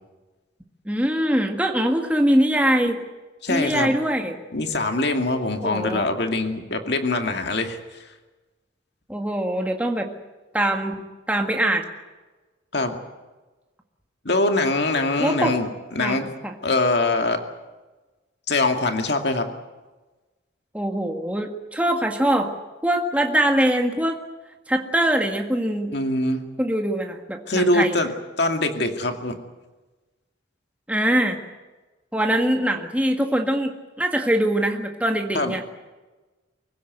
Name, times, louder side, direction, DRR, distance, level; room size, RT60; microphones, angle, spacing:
voice 1, 0.8-3.0 3.5-4.4 5.6-6.1 9.1-10.1 10.5-10.9 11.3-11.8 15.2-15.5 16.0-16.5 20.7-22.5 22.8-24.2 24.7-25.9 26.6-28.0 30.9-31.4 32.1-35.6, right 1 dB, 5° right, 3 dB, 1.7 m, -22 dB
voice 2, 3.4-3.9 4.5-8.1 12.7-13.0 14.2-16.3 16.6-17.4 18.5-19.5 25.9-26.4 27.5-29.3 35.3-35.5, left 2 dB, 55° left, 5 dB, 2.3 m, -23 dB
25.0 x 16.0 x 9.3 m, 1.2 s
head